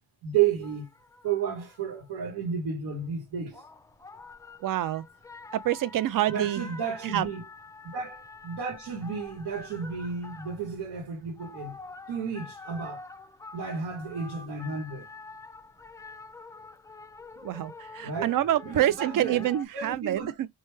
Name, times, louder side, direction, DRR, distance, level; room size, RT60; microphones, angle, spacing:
voice 1, 0.2-0.9 1.2-3.6 6.3-7.4 7.9-11.8 12.1-13.0 13.5-15.1 18.0-19.5 19.7-20.3, right 7 dB, 85° right, 1.0 m, -32 dB
sound 1, 0.6-2.2 3.0-19.6, left 3 dB, 10° left, 0.3 m, -47 dB
voice 2, 4.6-5.0 5.5-6.7 7.1-7.3 17.4-20.5, right 12 dB, 60° right, 0.5 m, -27 dB
3.2 x 2.1 x 3.1 m
cardioid pair, 75°, 38 cm